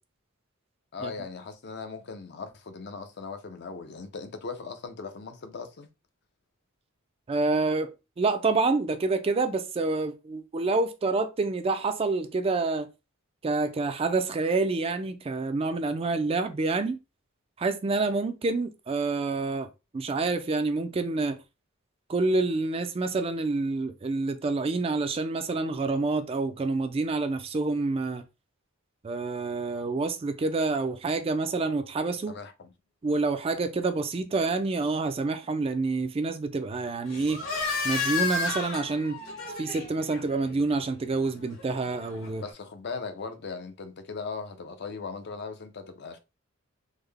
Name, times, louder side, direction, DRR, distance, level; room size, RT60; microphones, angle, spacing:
voice 1, 0.9-5.9 32.3-32.7 42.4-46.2, left 4 dB, 50° left, 0.5 m, -38 dB
voice 2, 7.3-12.9 13.4-17.0 17.6-19.7 19.9-21.4 22.1-28.2 29.0-32.3 33.0-37.4 37.8-39.2 39.6-42.4, right 3 dB, 25° right, 0.3 m, -27 dB
sound 1, 37.0-42.5, left 4 dB, 70° left, 1.4 m, -33 dB
3.6 x 2.1 x 3.3 m
head